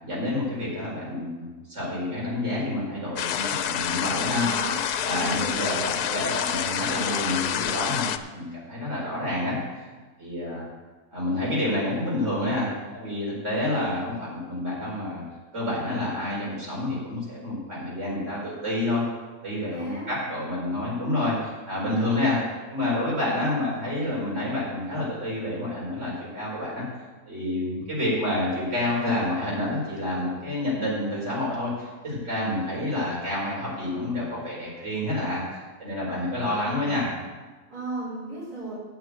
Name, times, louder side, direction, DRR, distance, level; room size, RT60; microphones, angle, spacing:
voice 1, 0.0-4.5 5.0-9.9 10.2-10.7 11.1-15.2 15.5-19.0 19.4-22.4 22.7-26.8 27.3-35.4 35.8-37.1, left 1 dB, 50° right, -6 dB, 5.2 m, -28 dB
sound 1, 3.2-8.2, left 10 dB, 90° left, 1.1 m, -28 dB
voice 2, 4.3-5.9 9.0-9.2 19.7-20.1 36.2-37.2 37.7-38.7, right 2 dB, 80° right, -10 dB, 4.5 m, -36 dB
9.6 x 6.8 x 8.4 m, 1.3 s
omnidirectional pair, 1.6 m